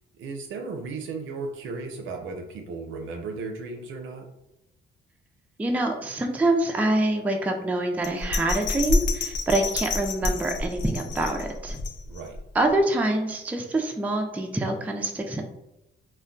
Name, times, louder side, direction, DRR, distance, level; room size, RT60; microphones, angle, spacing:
voice 1, 0.2-4.3 12.1-12.4, right 4 dB, 75° right, 3 dB, 0.5 m, -35 dB
voice 2, 5.6-11.8 12.5-15.4, right 2 dB, 10° right, 3 dB, 0.3 m, -25 dB
Bell, 8.0-12.4 12.8-12.9, left 3 dB, 65° left, 0.4 m, -28 dB
2.2 x 2.1 x 3.7 m, 0.89 s
cardioid pair, 90°, 20 cm